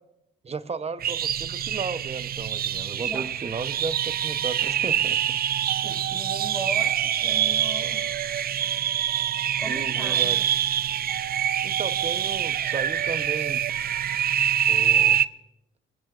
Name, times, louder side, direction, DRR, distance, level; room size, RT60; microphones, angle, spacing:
voice 1, 0.4-5.4 9.7-10.4 11.6-13.6 14.7-15.2, right 4 dB, 30° right, 0.9 m, -34 dB
sound 1, 1.0-15.3, right 10 dB, 50° right, 0.5 m, -25 dB
voice 2, 3.0-3.3 5.6-8.1 9.6-10.5, equal, 5° right, 5.5 m, -38 dB
27.5 x 20.0 x 2.5 m
cardioid pair, 90°, 20 cm